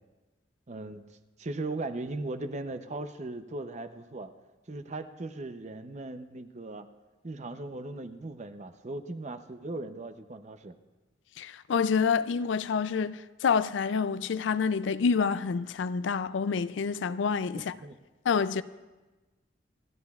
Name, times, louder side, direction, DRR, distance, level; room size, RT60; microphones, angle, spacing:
voice 1, 0.7-1.0 1.4-4.3 4.7-6.9 7.2-10.7 17.5-18.0, right 2 dB, 40° right, 0.6 m, -38 dB
voice 2, 11.4-17.7 18.3-18.6, left 5 dB, 85° left, 0.4 m, -27 dB
27.0 x 12.0 x 2.4 m
head